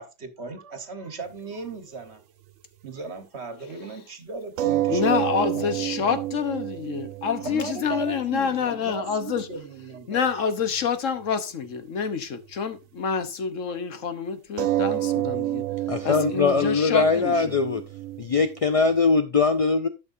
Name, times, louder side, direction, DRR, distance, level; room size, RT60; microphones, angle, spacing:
voice 1, 0.0-2.2 2.8-6.2 7.4-10.3, right 4 dB, 55° right, 1.5 m, -37 dB
sound 1, 1.5-1.6 4.6-9.6 9.9-10.3 10.7-10.9 14.6-19.2, right 15 dB, 90° right, 1.0 m, -30 dB
voice 2, 4.9-9.5 10.1-15.6 16.0-17.6, left 6 dB, 80° left, 1.4 m, -27 dB
voice 3, 15.9-17.8 18.2-19.9, left 4 dB, 60° left, 0.3 m, -21 dB
12.0 x 6.4 x 2.6 m
omnidirectional pair, 1.3 m